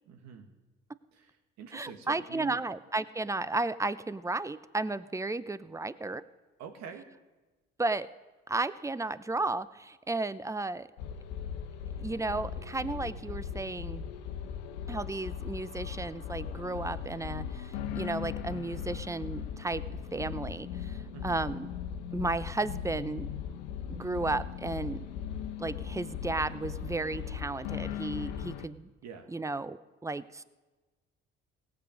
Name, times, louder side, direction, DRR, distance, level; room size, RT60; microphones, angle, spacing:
voice 1, 0.1-0.5 1.1-2.6 6.6-7.1 21.1-21.4 29.0-29.3, right 7 dB, 70° right, 6 dB, 1.7 m, -45 dB
voice 2, 1.7-6.2 7.8-8.1 8.5-10.9 12.0-14.0 14.9-19.8 20.1-21.7 22.1-23.3 23.9-25.0 25.6-28.9 29.3-30.4, right 2 dB, 10° right, 16 dB, 0.6 m, -34 dB
sound 1, 11.0-28.7, left 8 dB, 80° left, 0.9 m, -38 dB
17.5 x 8.3 x 5.2 m, 1.2 s
hypercardioid pair, 55°, 29 cm